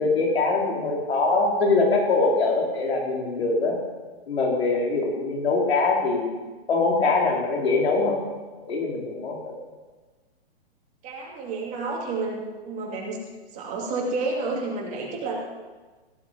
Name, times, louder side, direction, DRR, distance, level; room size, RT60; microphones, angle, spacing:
voice 1, 0.0-3.8 4.3-6.4 6.7-8.2 8.6-9.6, left 3 dB, 75° left, -1 dB, 4.3 m, -23 dB
voice 2, 11.0-13.2 13.5-15.4, right 3 dB, 20° right, -2 dB, 2.8 m, -30 dB
17.0 x 8.5 x 5.3 m, 1.3 s
hypercardioid pair, 150°, 32 cm